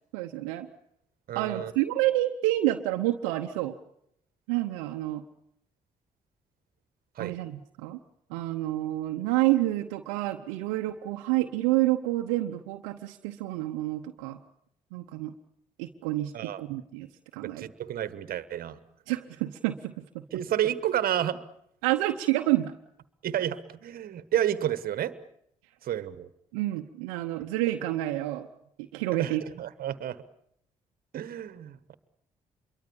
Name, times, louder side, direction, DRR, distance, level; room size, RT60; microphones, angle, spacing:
voice 1, 0.1-0.7 1.3-3.7 4.5-5.2 7.2-8.0 8.3-14.4 14.9-15.3 15.8-17.1 17.3-17.7 19.1-20.2 21.8-22.7 26.5-28.5 28.9-29.4, right 16 dB, 85° right, 4 dB, 0.9 m, -28 dB
voice 2, 1.3-1.7 7.2-7.3 16.3-16.6 17.4-18.8 20.3-21.4 23.2-25.2 25.8-26.3 29.1-30.2 31.1-31.9, right 11 dB, 65° right, 15 dB, 1.3 m, -30 dB
26.5 x 23.0 x 7.1 m, 0.72 s
hypercardioid pair, 50°, 16 cm